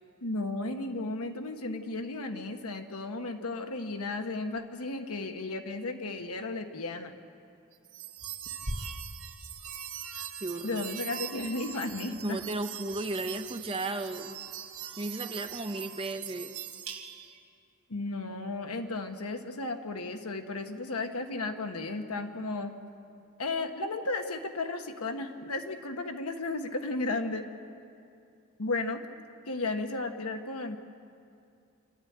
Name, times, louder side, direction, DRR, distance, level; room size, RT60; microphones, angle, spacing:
voice 1, 0.2-7.1 10.6-12.4 17.9-22.7 23.4-27.4 28.6-29.0 29.5-30.8, left 2 dB, 85° left, 6 dB, 1.4 m, -34 dB
sound 1, 7.8-17.4, right 7 dB, 70° right, 2.2 m, -41 dB
voice 2, 10.4-10.8 12.1-14.4 15.0-16.6, right 2 dB, 25° right, 7 dB, 0.8 m, -34 dB
27.0 x 12.0 x 8.7 m, 2.5 s
head